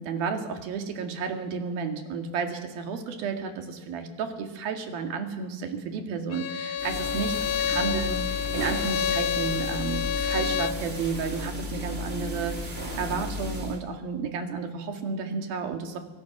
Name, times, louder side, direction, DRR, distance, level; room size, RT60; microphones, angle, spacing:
voice 1, 0.0-7.3 7.7-16.0, right 5 dB, 65° right, 5 dB, 3.8 m, -32 dB
Bowed string instrument, 6.3-10.8, left 9 dB, 75° left, 1.9 m, -29 dB
sound 1, 6.8-13.8, left 1 dB, 15° right, 2.5 m, -34 dB
24.0 x 24.0 x 6.1 m, 1.2 s
omnidirectional pair, 4.6 m